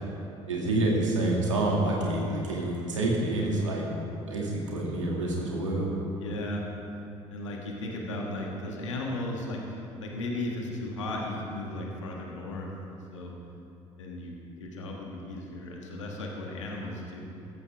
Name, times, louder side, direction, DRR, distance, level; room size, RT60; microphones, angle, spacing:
voice 1, 0.5-3.9 4.3-5.9, right 2 dB, 85° right, -2 dB, 2.2 m, -27 dB
voice 2, 6.2-6.6 7.3-13.3 14.0-14.3 14.6-17.2, left 1 dB, 80° left, -1 dB, 1.7 m, -35 dB
15.5 x 14.5 x 3.5 m, 2.8 s
figure-of-eight pair, 55°, 16 cm